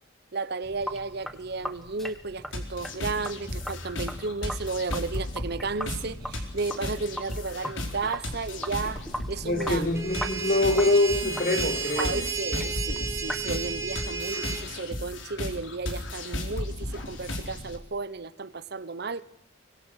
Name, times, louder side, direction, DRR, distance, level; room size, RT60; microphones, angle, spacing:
voice 1, 0.3-9.8 12.0-19.2, right 4 dB, 55° right, 0.9 m, -33 dB
Sink (filling or washing), 0.6-13.5, equal, ahead, 1.5 m, -40 dB
sound 1, 2.5-17.8, left 1 dB, 70° left, 4.4 m, -35 dB
voice 2, 9.4-12.2, left 2 dB, 45° left, 4.1 m, -24 dB
sound 2, 9.9-14.6, right 4 dB, 15° right, 2.8 m, -32 dB
24.5 x 22.5 x 6.5 m
head